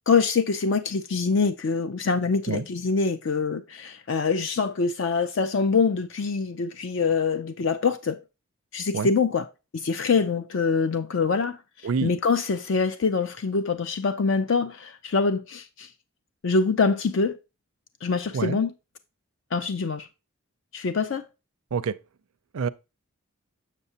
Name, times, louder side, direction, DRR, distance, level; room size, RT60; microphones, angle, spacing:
voice 1, 0.1-8.2 8.7-9.5 9.7-15.9 16.4-17.4 18.0-18.7 19.5-20.1 20.7-21.3, left 4 dB, 55° left, 0.4 m, -24 dB
voice 2, 2.5-2.7 8.9-9.1 11.8-12.1 18.3-18.6 21.7-21.9 22.5-22.7, right 5 dB, 75° right, 0.4 m, -26 dB
7.2 x 6.8 x 2.7 m
head